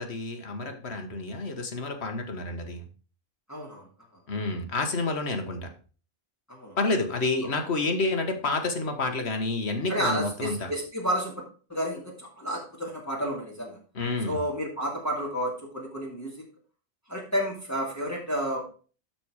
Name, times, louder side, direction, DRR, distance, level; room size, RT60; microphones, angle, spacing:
voice 1, 0.0-2.8 4.3-5.6 6.8-10.7 14.0-14.4, left 3 dB, 80° left, 5 dB, 1.7 m, -29 dB
voice 2, 3.5-3.8 6.5-6.8 9.9-11.4 11.7-13.8 14.2-16.4 17.1-18.7, equal, 15° left, -3 dB, 2.3 m, -31 dB
12.0 x 4.5 x 4.9 m, 0.38 s
omnidirectional pair, 1.1 m